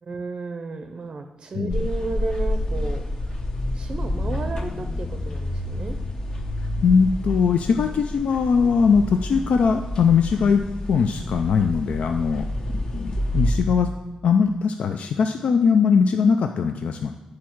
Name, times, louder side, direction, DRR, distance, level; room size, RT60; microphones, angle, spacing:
voice 1, 0.0-3.4 3.7-6.0, right 3 dB, 40° right, 6 dB, 0.5 m, -33 dB
voice 2, 1.5-1.9 6.8-10.6 10.9-12.5 12.7-13.9 14.2-17.1, left 6 dB, 70° left, 6 dB, 0.4 m, -20 dB
sound 1, 1.7-13.6, left 1 dB, 40° left, 0.9 m, -29 dB
8.4 x 4.7 x 4.5 m, 1.0 s
wide cardioid pair, 115°, 2 cm